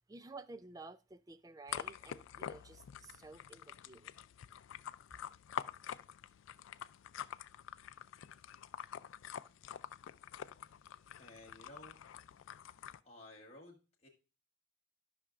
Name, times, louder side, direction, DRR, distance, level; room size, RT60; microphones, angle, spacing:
voice 1, 0.1-4.1, right 3 dB, 20° right, 0.3 m, -53 dB
sound 1, 1.7-13.0, left 9 dB, 80° left, 0.3 m, -47 dB
voice 2, 11.2-12.0 13.0-14.1, left 1 dB, 30° left, 1.4 m, -55 dB
13.0 x 5.7 x 2.4 m
head